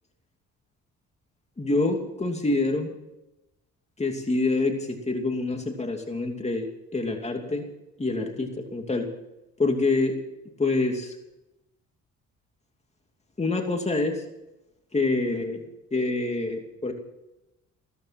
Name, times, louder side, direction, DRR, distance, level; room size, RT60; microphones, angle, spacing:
voice 1, 1.6-2.9 4.0-7.7 8.0-9.1 9.6-10.1 10.6-11.1 13.4-14.2 14.9-15.6 15.9-16.9, left 3 dB, 20° left, 3 dB, 2.8 m, -26 dB
16.0 x 14.0 x 6.0 m, 0.93 s
cardioid pair, 90°, 30 cm